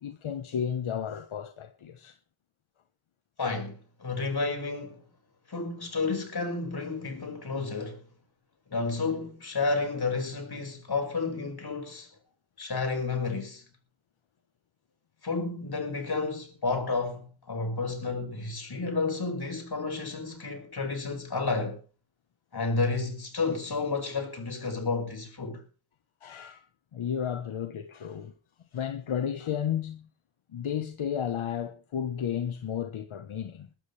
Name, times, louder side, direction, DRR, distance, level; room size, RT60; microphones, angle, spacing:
voice 1, 0.0-2.2 26.2-26.7 26.9-28.3 28.7-30.1 30.5-33.7, left 8 dB, 80° left, 1.1 m, -33 dB
voice 2, 3.4-5.0 5.5-8.0 8.7-12.1 12.6-13.6 15.2-21.8 22.5-25.6, left 3 dB, 50° left, 5.2 m, -31 dB
21.5 x 12.5 x 3.3 m
wide cardioid pair, 85°, 48 cm